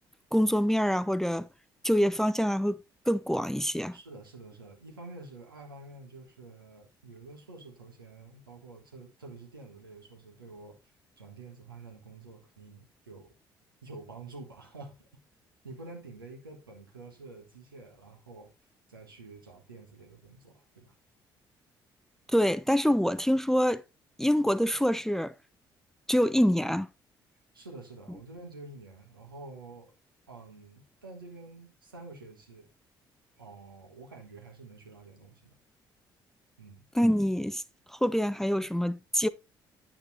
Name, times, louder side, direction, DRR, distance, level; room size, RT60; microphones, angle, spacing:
voice 1, 0.3-1.5 1.8-2.8 3.1-4.0 22.3-23.8 24.2-25.3 26.1-26.9 36.9-37.6 37.9-39.3, equal, 5° left, 0.5 m, -25 dB
voice 2, 3.9-13.3 13.8-15.0 15.6-18.5 18.9-21.0 27.5-29.9 30.3-32.7 33.4-35.6 36.6-36.8, right 3 dB, 85° right, 1.5 m, -48 dB
8.8 x 8.8 x 2.7 m
figure-of-eight pair, 45°, 11 cm